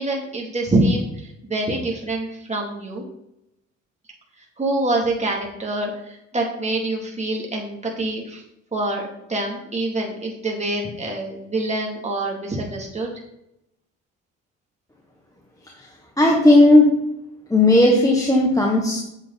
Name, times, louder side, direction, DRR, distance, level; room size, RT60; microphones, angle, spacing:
voice 1, 0.0-3.0 4.6-8.4 8.7-9.0 9.3-13.1, right 2 dB, 20° right, -1 dB, 3.0 m, -25 dB
voice 2, 16.2-17.0 17.5-19.0, left 1 dB, 10° left, -1 dB, 1.6 m, -15 dB
8.7 x 7.1 x 4.2 m, 0.83 s
cardioid pair, 90°, 30 cm